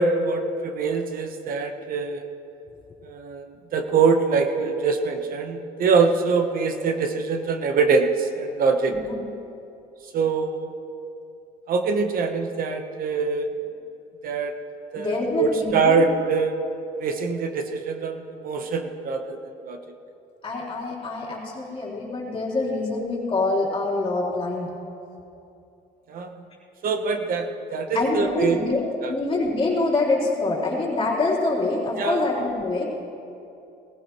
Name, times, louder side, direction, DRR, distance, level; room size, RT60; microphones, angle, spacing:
voice 1, 0.0-2.2 3.0-9.0 10.1-10.7 11.7-13.5 14.2-14.5 14.9-16.6 17.0-19.4 19.7-19.8 26.1-26.4 26.8-28.6 29.0-29.1 32.0-32.2, right 4 dB, 60° right, 5 dB, 1.0 m, -24 dB
voice 2, 8.9-9.2 14.9-16.1 20.4-24.7 27.9-32.9, left 2 dB, 30° left, -5 dB, 3.7 m, -25 dB
18.5 x 15.0 x 3.1 m, 2.7 s
cardioid pair, 110°, 17 cm